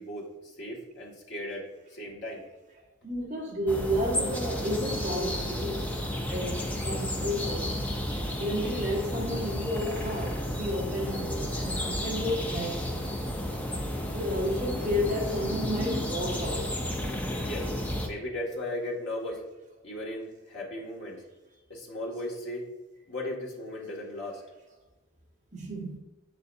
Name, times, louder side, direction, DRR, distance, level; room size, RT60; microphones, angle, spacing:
voice 1, 0.0-2.4 17.4-17.7 18.0-19.4 19.8-21.2 21.7-22.7 23.1-24.4, left 1 dB, 55° left, 1.9 m, -36 dB
voice 2, 3.0-7.8 8.4-13.1 14.1-16.8 25.5-26.0, equal, 35° right, 1.3 m, -32 dB
sound 1, 3.7-18.1, left 1 dB, 10° left, 0.5 m, -32 dB
7.9 x 6.8 x 2.6 m
head